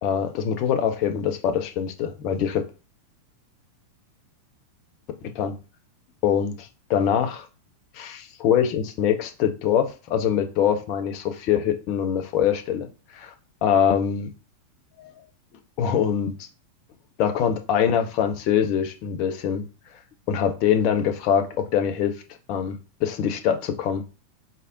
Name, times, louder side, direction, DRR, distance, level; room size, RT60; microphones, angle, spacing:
voice 1, 0.0-2.6 5.3-5.5 6.2-7.5 7.9-12.9 13.1-13.3 13.6-14.3 15.8-16.3 17.2-19.7 20.3-22.1 22.5-24.0, left 8 dB, 40° left, 6 dB, 0.7 m, -23 dB
4.0 x 3.3 x 2.7 m, 0.31 s
figure-of-eight pair, 90°, 0 cm